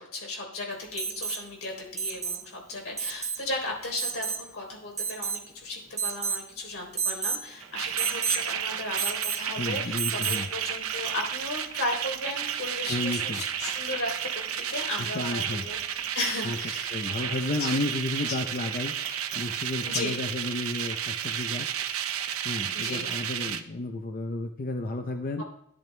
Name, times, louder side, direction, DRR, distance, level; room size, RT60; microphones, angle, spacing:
voice 1, 0.0-17.0 17.6-17.8 19.0-19.1 19.8-20.2 22.7-23.1 25.4-25.5, left 2 dB, 65° left, 0 dB, 3.6 m, -35 dB
Alarm, 1.0-1.4 2.0-2.4 3.0-3.4 4.0-4.4 5.0-5.5 6.0-6.5 7.0-7.4 8.0-8.4 9.0-9.5 10.0-10.5 12.2-12.3, right 6 dB, 15° right, 0.4 m, -31 dB
sound 1, 7.6-23.6, right 9 dB, 80° right, 0.6 m, -32 dB
voice 2, 9.6-10.5 12.9-13.4 15.1-15.6 16.4-16.6 16.9-18.9 19.3-21.7 22.4-25.4, left 2 dB, 40° left, 5 dB, 0.6 m, -32 dB
13.5 x 10.5 x 2.2 m, 0.75 s
head